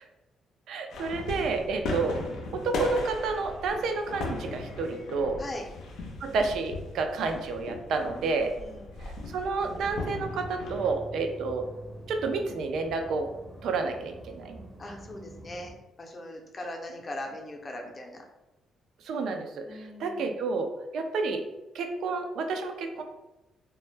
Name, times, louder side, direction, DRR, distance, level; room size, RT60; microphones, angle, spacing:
voice 1, 0.7-2.2 2.5-5.4 6.2-8.5 9.3-11.7 12.1-13.3 13.6-14.6 19.0-21.4 21.7-23.0, right 4 dB, 75° right, 5 dB, 0.3 m, -30 dB
sound 1, 0.9-10.9, left 2 dB, 80° left, 0.5 m, -38 dB
voice 2, 8.0-9.0 14.8-18.3 19.6-20.3, left 1 dB, 35° left, 1 dB, 0.5 m, -41 dB
sound 2, 9.6-15.7, right 1 dB, 20° right, 0.6 m, -45 dB
2.1 x 2.0 x 3.1 m, 1.0 s
cardioid pair, 90°, 0 cm